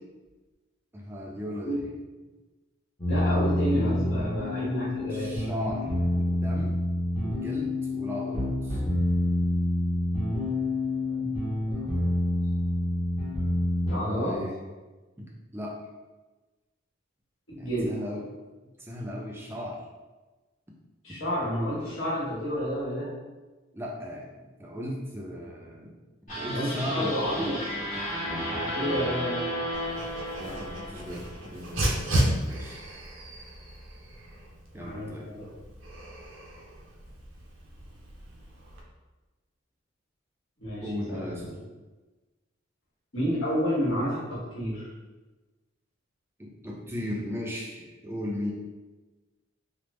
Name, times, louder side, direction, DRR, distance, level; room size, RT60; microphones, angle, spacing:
voice 1, 0.9-1.8 5.1-6.8 7.2-8.8 14.0-14.5 15.2-15.3 15.5-15.8 17.5-18.3 18.8-19.8 23.7-26.0 26.4-27.1 30.4-32.0 32.4-32.8 34.7-35.3 40.8-41.4 46.4-48.5, left 1 dB, 10° right, -2 dB, 0.4 m, -36 dB
sound 1, 3.0-14.4, left 1 dB, 20° left, 0.8 m, -27 dB
voice 2, 3.1-5.3 11.1-11.4 11.7-11.9 13.9-14.4 17.5-18.0 21.0-23.1 26.4-27.7 28.5-29.5 34.8-35.5 40.6-41.5 43.1-44.9, equal, 70° left, -7 dB, 1.3 m, -30 dB
sound 2, 26.3-31.6, equal, 40° left, 1.2 m, -33 dB
Dog, 29.7-38.8, right 1 dB, 75° right, 0.5 m, -34 dB
3.3 x 2.0 x 3.1 m, 1.2 s
head